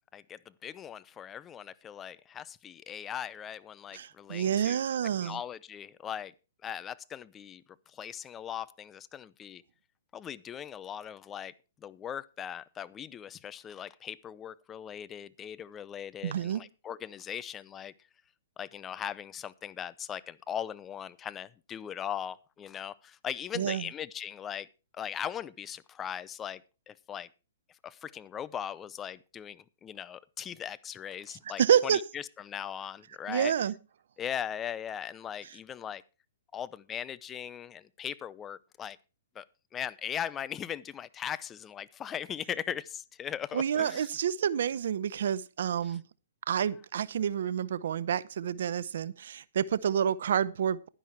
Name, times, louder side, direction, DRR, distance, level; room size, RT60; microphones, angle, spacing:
voice 1, 0.1-4.8 5.2-6.3 6.6-7.6 7.9-9.6 10.1-11.5 11.8-17.9 18.6-24.7 24.9-26.6 26.9-27.3 27.8-33.5 34.2-36.0 36.5-39.0 39.3-39.4 39.7-44.1, left 9 dB, 20° left, 0.6 m, -39 dB
voice 2, 3.9-5.4 16.2-16.6 23.5-23.9 31.6-32.0 33.3-33.7 43.5-46.0 46.5-50.9, right 8 dB, 65° right, 0.7 m, -28 dB
11.0 x 10.5 x 4.5 m
hypercardioid pair, 130°, 0 cm